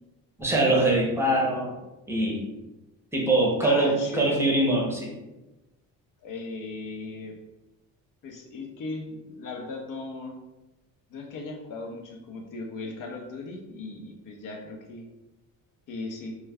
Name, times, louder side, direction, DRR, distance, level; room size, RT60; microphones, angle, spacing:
voice 1, 0.4-1.7 2.1-2.4 3.1-5.1, right 2 dB, 5° right, -2 dB, 0.7 m, -23 dB
voice 2, 3.6-4.4 6.2-7.3 8.2-10.4 11.1-15.1 15.9-16.4, left 3 dB, 55° left, 2 dB, 0.7 m, -37 dB
2.3 x 2.2 x 3.4 m, 1.0 s
cardioid pair, 85°, 39 cm